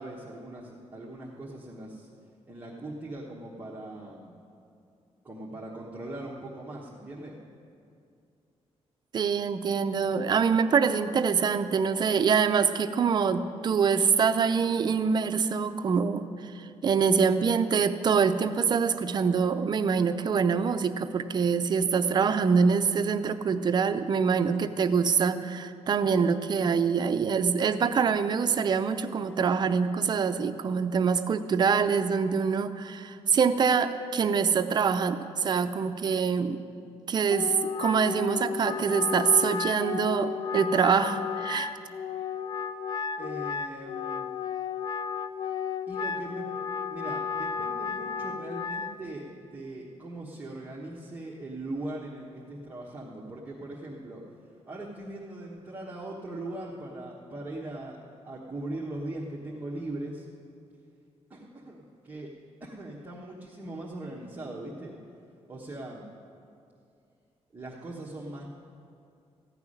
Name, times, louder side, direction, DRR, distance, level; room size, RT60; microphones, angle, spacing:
voice 1, 0.0-2.1 2.5-4.4 5.2-7.4 43.2-44.3 45.9-46.5 46.9-54.2 54.7-58.0 58.2-60.2 61.3-62.3 62.6-64.9 65.5-66.1 67.5-68.5, right 1 dB, 15° right, -6 dB, 1.2 m, -40 dB
voice 2, 9.1-36.6 37.1-41.7, right 6 dB, 40° right, 10 dB, 0.5 m, -25 dB
Wind instrument woodwind instrument, 37.3-48.9, left 6 dB, 40° left, 0.4 m, -33 dB
14.5 x 5.9 x 9.8 m, 2.4 s
wide cardioid pair, 165°, 11 cm